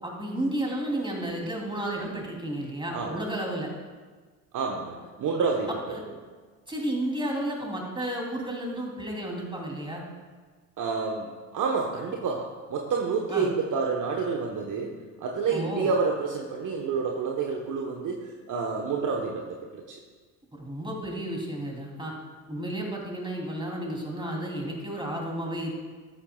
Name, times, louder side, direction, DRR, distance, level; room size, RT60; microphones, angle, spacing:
voice 1, 0.0-3.7 5.9-6.0 6.7-10.0 13.3-13.5 15.5-15.9 20.6-22.1 22.5-25.7, right 1 dB, 10° right, -1 dB, 3.2 m, -32 dB
voice 2, 4.5-5.8 10.8-20.0, right 5 dB, 40° right, 0 dB, 1.3 m, -29 dB
13.0 x 11.5 x 2.4 m, 1.5 s
figure-of-eight pair, 60°, 46 cm